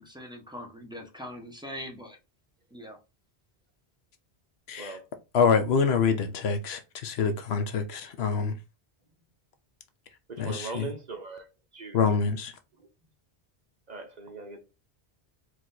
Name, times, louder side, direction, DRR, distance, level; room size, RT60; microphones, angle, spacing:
voice 1, 0.0-2.2 2.7-3.0, equal, 5° right, 1.0 m, -41 dB
voice 2, 5.3-8.5 10.4-10.9 11.9-12.5, left 6 dB, 80° left, 0.9 m, -26 dB
voice 3, 10.3-11.5 11.7-12.0 13.9-14.6, right 4 dB, 45° right, 0.8 m, -39 dB
4.7 x 2.6 x 3.9 m
omnidirectional pair, 1.1 m